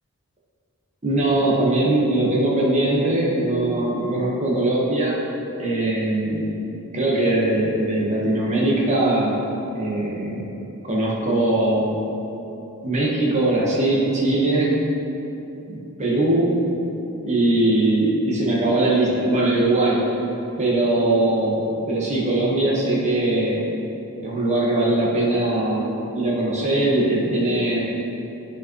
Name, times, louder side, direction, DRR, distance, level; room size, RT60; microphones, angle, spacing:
voice 1, 1.0-5.2 5.6-6.5 6.9-9.4 9.7-10.4 10.8-12.0 12.8-14.8 15.7-16.6 17.2-20.0 20.6-23.7 24.2-27.9, right 2 dB, 30° right, -5 dB, 1.4 m, -21 dB
10.5 x 5.0 x 3.2 m, 3.0 s
head